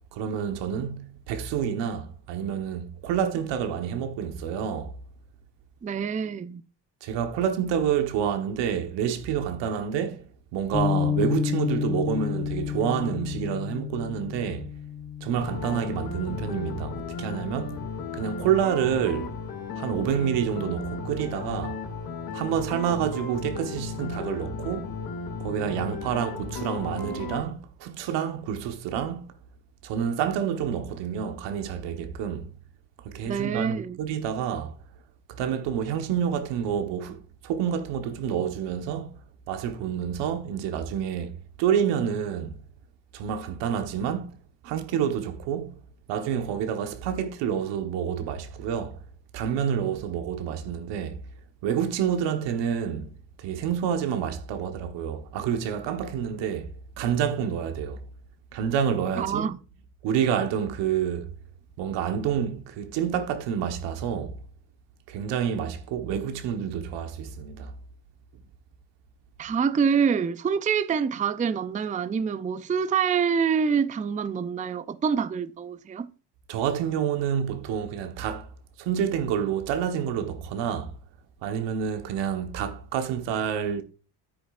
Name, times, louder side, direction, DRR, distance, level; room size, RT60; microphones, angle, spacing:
voice 1, 0.1-4.9 7.0-14.7 15.2-17.9 18.1-19.4 19.7-21.8 22.3-24.9 25.4-29.3 29.8-32.5 33.0-34.7 35.3-39.2 39.5-42.6 43.1-44.3 44.6-45.8 46.1-49.0 49.3-51.2 51.6-56.7 57.0-58.0 58.5-59.5 60.0-61.3 61.8-64.4 65.1-67.7 76.5-78.5 78.8-80.9 81.4-83.8, right 8 dB, 80° right, 1.3 m, -28 dB
voice 2, 5.8-6.6 33.2-34.0 59.2-59.6 69.4-76.1, right 6 dB, 20° right, 0.5 m, -26 dB
Bass guitar, 10.7-17.0, left 8 dB, 15° left, 1.0 m, -30 dB
sound 1, 15.4-27.4, left 5 dB, 55° left, 2.3 m, -35 dB
10.0 x 8.8 x 2.5 m
supercardioid pair, 85°, 42 cm